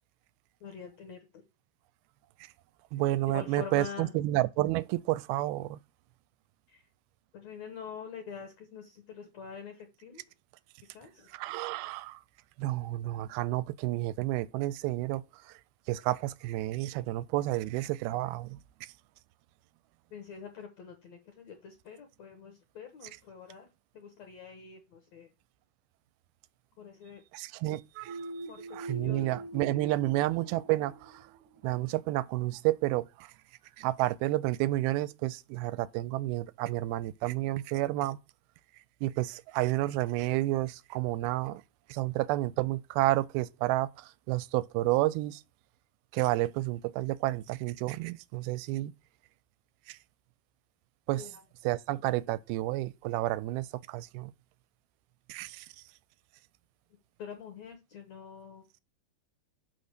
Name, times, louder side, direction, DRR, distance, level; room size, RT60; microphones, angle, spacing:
voice 1, 0.6-1.4 3.3-4.1 6.7-6.8 7.3-10.2 10.8-11.3 20.1-23.7 23.9-25.3 26.8-27.2 28.5-30.2 51.2-51.4 57.2-58.6, left 6 dB, 70° left, 1.7 m, -45 dB
voice 2, 2.9-5.8 11.3-12.2 12.6-15.5 15.9-18.6 27.3-28.3 28.7-31.3 31.6-33.3 33.8-38.2 39.0-41.6 41.9-45.4 46.1-48.9 49.9-50.0 51.1-51.3 51.7-54.3 55.3-55.7, right 17 dB, 85° right, 2.4 m, -30 dB
sound 1, 28.1-31.7, right 2 dB, 65° right, 2.4 m, -43 dB
5.9 x 5.4 x 6.5 m
omnidirectional pair, 4.4 m